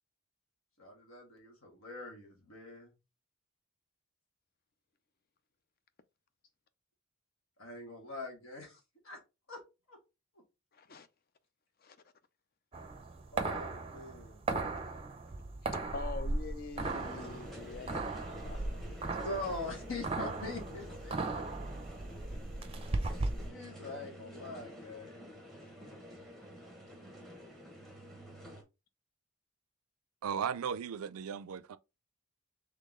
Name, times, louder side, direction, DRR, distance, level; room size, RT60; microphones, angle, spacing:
voice 1, 0.8-2.9 7.6-8.8 9.0-9.2 9.5-9.6 9.9-10.0 13.3-14.4 17.2-17.3 19.1-21.4 23.5-25.3, left 2 dB, 75° left, 1.7 m, -43 dB
voice 2, 10.7-11.1 11.8-12.0 14.5-14.6 15.6-19.2, left 3 dB, 45° left, 0.4 m, -45 dB
sound 1, 12.7-23.5, right 3 dB, 25° right, 0.5 m, -37 dB
sound 2, 16.8-28.6, equal, ahead, 0.9 m, -49 dB
voice 3, 30.2-31.8, right 7 dB, 85° right, 0.4 m, -36 dB
3.8 x 3.3 x 3.7 m
head